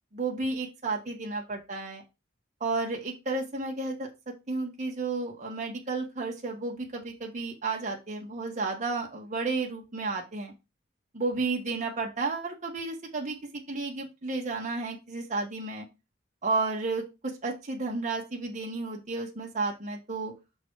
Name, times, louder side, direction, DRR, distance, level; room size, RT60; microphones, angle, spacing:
voice 1, 0.1-2.0 2.6-4.1 4.5-10.5 11.1-13.4 13.7-15.9 16.4-20.3, right 3 dB, 40° right, 0 dB, 1.4 m, -32 dB
6.1 x 3.9 x 4.6 m, 0.25 s
head